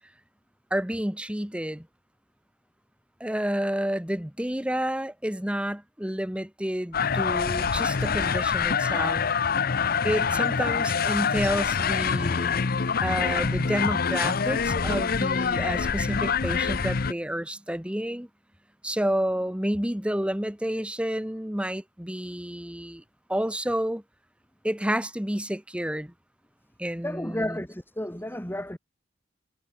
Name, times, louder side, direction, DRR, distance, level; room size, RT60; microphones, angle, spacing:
voice 1, 0.7-1.9 3.2-9.2 10.0-12.7 13.0-18.3 18.8-23.0 23.3-24.0 24.6-26.1 26.8-27.6, equal, 5° right, 1.3 m, -30 dB
sound 1, 6.9-17.1, left 6 dB, 50° left, 0.7 m, -25 dB
voice 2, 27.0-28.8, left 1 dB, 10° left, 3.7 m, -32 dB
head